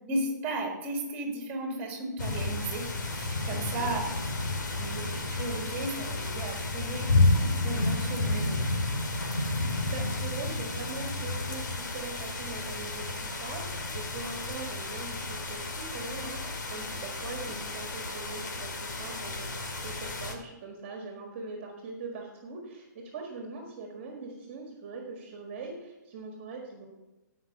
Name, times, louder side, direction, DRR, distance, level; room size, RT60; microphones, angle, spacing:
voice 1, 0.1-4.1 4.7-8.7, right 2 dB, 20° right, 1 dB, 2.1 m, -35 dB
sound 1, 2.2-20.3, left 2 dB, 75° left, 2.3 m, -31 dB
voice 2, 9.6-19.6 19.8-26.9, right 4 dB, 35° right, 1 dB, 1.7 m, -42 dB
14.5 x 5.8 x 5.4 m, 1.1 s
hypercardioid pair, 160°, 10 cm